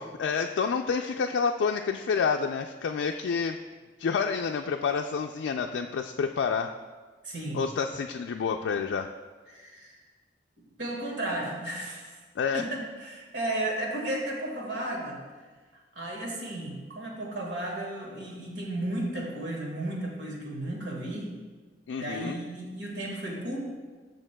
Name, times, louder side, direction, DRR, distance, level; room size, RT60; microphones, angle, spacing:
voice 1, 0.0-3.6 4.0-6.8 7.5-9.1 12.4-12.7 21.9-22.4, left 5 dB, 85° left, 4 dB, 0.3 m, -29 dB
voice 2, 7.2-7.6 9.5-9.9 10.6-12.2 12.5-15.2 15.7-21.3 22.0-23.6, right 1 dB, 85° right, -1 dB, 1.8 m, -34 dB
12.5 x 6.4 x 2.2 m, 1.4 s
head